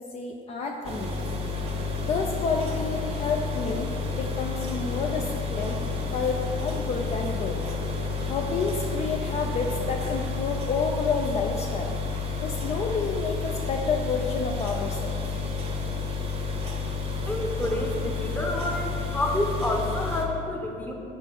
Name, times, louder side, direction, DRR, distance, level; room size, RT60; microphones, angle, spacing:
voice 1, 0.0-1.4 2.0-5.8 6.1-7.6 7.9-8.0 8.3-12.0 12.4-15.1, left 4 dB, 40° left, 1 dB, 0.4 m, -29 dB
sound 1, 0.8-20.2, left 4 dB, 35° right, 0.9 m, -30 dB
voice 2, 17.3-20.9, left 1 dB, 10° left, 1 dB, 0.8 m, -28 dB
4.4 x 4.3 x 5.8 m, 2.7 s
cardioid pair, 110°, 17 cm